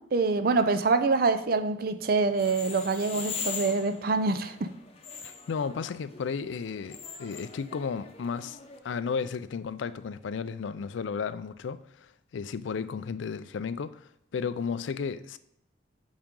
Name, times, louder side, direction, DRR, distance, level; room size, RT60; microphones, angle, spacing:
voice 1, 0.1-4.7, right 4 dB, 50° right, 0.5 m, -25 dB
sound 1, 2.3-8.8, left 5 dB, 30° left, 0.7 m, -41 dB
voice 2, 5.2-8.6 8.8-15.4, left 5 dB, 80° left, 0.4 m, -34 dB
7.2 x 5.1 x 3.7 m
head